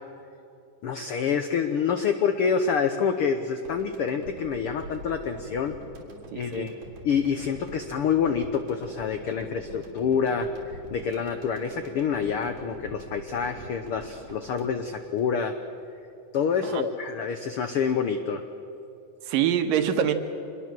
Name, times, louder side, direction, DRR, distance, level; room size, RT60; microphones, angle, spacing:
voice 1, 0.8-5.7 6.3-6.8 7.0-15.5 16.3-18.4, left 6 dB, 85° left, 8 dB, 1.2 m, -27 dB
sound 1, 3.7-15.9, right 1 dB, 60° right, 4.5 m, -45 dB
voice 2, 6.3-6.7 16.6-16.8 19.2-20.1, right 9 dB, 85° right, 7 dB, 3.0 m, -25 dB
25.0 x 21.0 x 7.6 m, 2.9 s
omnidirectional pair, 3.9 m